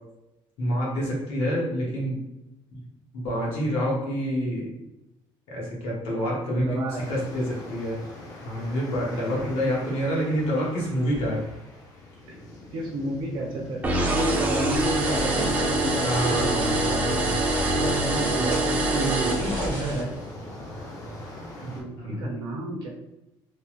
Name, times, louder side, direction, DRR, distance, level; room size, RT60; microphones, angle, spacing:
voice 1, 0.6-2.2 2.7-2.8 3.1-4.7 5.5-8.0 8.4-11.4 14.6-14.7 16.0-17.3 21.9-22.3, equal, 75° left, -4 dB, 1.2 m, -27 dB
voice 2, 6.6-7.0 12.3-12.4 12.7-17.0 17.7-20.2 21.6-22.9, right 1 dB, 55° right, -1 dB, 0.7 m, -31 dB
sound 1, 7.0-21.8, left 1 dB, 35° left, 0.6 m, -40 dB
sound 2, 13.8-20.0, right 2 dB, 15° right, 0.5 m, -25 dB
sound 3, 14.7-20.0, equal, 55° left, 1.2 m, -36 dB
3.3 x 2.1 x 3.0 m, 0.91 s
cardioid pair, 175°, 10 cm